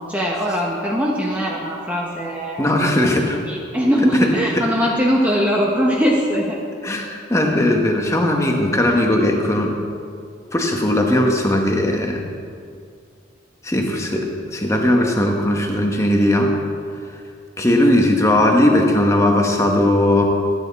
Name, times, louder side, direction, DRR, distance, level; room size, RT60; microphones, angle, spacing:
voice 1, 0.0-3.1 3.5-6.6, equal, 10° right, -3 dB, 0.9 m, -21 dB
voice 2, 2.6-3.4 4.2-4.3 4.6-4.7 6.8-9.8 10.5-12.2 13.6-16.5 17.6-20.2, left 1 dB, 15° left, 1 dB, 1.0 m, -18 dB
13.5 x 8.9 x 4.0 m, 2.3 s
head